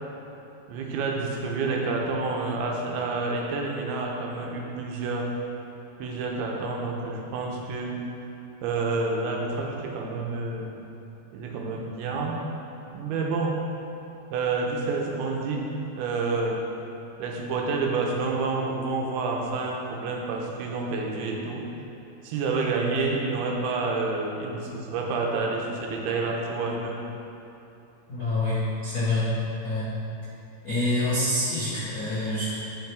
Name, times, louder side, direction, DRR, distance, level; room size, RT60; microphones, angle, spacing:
voice 1, 0.7-5.3 6.0-8.0 8.6-10.7 11.3-12.4 12.9-13.6 14.3-15.7 16.0-16.6 17.2-21.6 22.2-27.0, right 3 dB, 85° right, -1 dB, 2.8 m, -28 dB
voice 2, 28.1-29.3 29.6-29.9 30.6-32.5, left 1 dB, 85° left, -12 dB, 0.8 m, -26 dB
10.5 x 5.6 x 3.5 m, 2.8 s
omnidirectional pair, 4.5 m